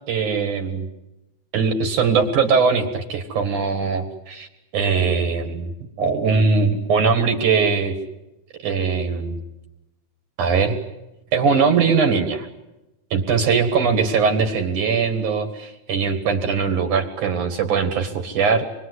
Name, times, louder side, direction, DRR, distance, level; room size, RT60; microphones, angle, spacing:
voice 1, 0.1-0.9 1.5-4.5 4.7-5.7 6.0-7.9 8.6-9.4 10.4-10.8 11.3-12.5 13.1-18.6, right 5 dB, 55° right, 6 dB, 2.4 m, -20 dB
27.5 x 22.0 x 8.1 m, 0.96 s
omnidirectional pair, 5.8 m